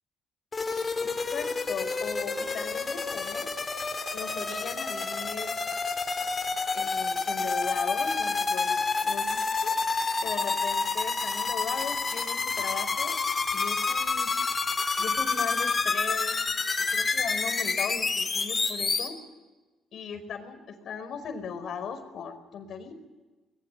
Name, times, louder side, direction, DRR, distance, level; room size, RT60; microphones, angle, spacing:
sound 1, 0.5-19.1, left 4 dB, 35° left, 3.5 m, -29 dB
voice 1, 1.0-3.5 4.1-5.5 6.7-9.8 10.2-13.2 13.5-14.3 15.0-16.4 16.8-19.2 19.9-22.9, left 6 dB, 65° left, 8 dB, 4.9 m, -38 dB
23.0 x 21.0 x 8.8 m, 1.2 s
cardioid pair, 90°, 0 cm